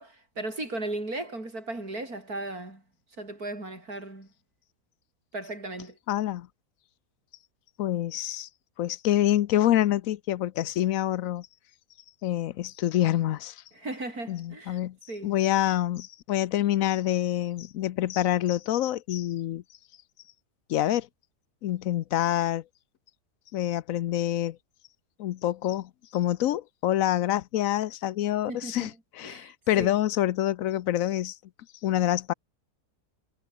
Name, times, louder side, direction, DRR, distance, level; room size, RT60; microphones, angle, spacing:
voice 1, 0.0-2.8 3.2-4.3 5.3-6.0 13.7-14.8 15.1-15.4 28.5-28.9 29.2-29.9, right 2 dB, 70° right, 7.2 m, -36 dB
voice 2, 6.1-6.5 7.8-8.5 8.8-11.5 12.2-13.6 14.3-15.0 15.2-19.6 20.7-21.1 21.6-22.6 23.5-24.6 25.2-31.4 31.8-32.3, left 13 dB, 65° left, 1.0 m, -26 dB
omnidirectional pair, 1.6 m